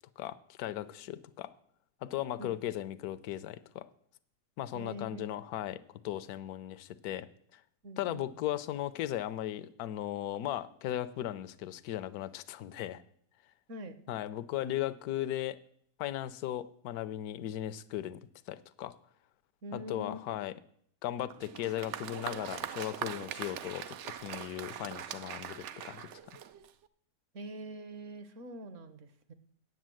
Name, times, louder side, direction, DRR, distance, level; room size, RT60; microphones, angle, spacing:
voice 1, 0.2-1.5 2.0-3.9 4.6-7.3 7.5-7.6 8.0-13.0 14.1-15.6 16.0-18.2 18.5-18.9 19.7-20.5 21.0-26.2, left 13 dB, 70° left, 14 dB, 1.1 m, -37 dB
voice 2, 4.7-5.4 7.8-8.3 13.7-13.9 19.6-20.4 27.3-29.3, equal, 55° right, 11 dB, 1.2 m, -44 dB
Applause, 21.3-26.9, right 10 dB, 70° right, 0.7 m, -42 dB
9.2 x 7.9 x 7.6 m, 0.67 s
omnidirectional pair, 1.7 m